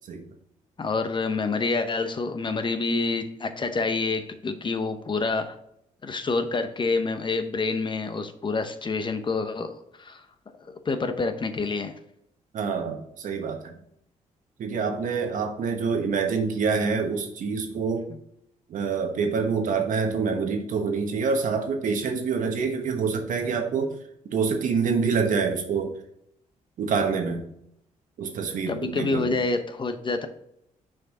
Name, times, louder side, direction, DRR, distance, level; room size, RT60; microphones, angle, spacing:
voice 1, 0.8-5.5 6.0-10.2 10.9-11.9 28.7-30.3, left 3 dB, 35° left, 8 dB, 0.8 m, -27 dB
voice 2, 12.5-13.8 14.6-18.1 18.7-23.9 24.3-25.9 26.8-27.4 28.2-29.4, right 5 dB, 70° right, 4 dB, 1.2 m, -26 dB
6.2 x 4.8 x 3.7 m, 0.76 s
cardioid pair, 80°, 14 cm